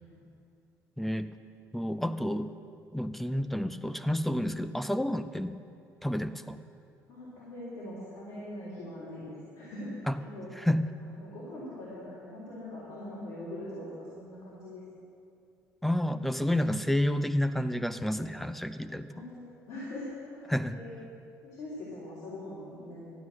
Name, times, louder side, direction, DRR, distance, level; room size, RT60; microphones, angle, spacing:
voice 1, 1.0-1.3 1.7-2.5 2.9-5.6 6.0-6.6 10.1-10.2 10.6-10.8 15.8-19.1 20.5-20.8, left 1 dB, 5° left, 11 dB, 0.5 m, -30 dB
voice 2, 7.1-10.5 11.0-14.8 19.1-20.9 21.4-23.1, left 1 dB, 75° left, -7 dB, 3.5 m, -42 dB
13.0 x 9.3 x 6.5 m, 2.5 s
cardioid pair, 110°, 6 cm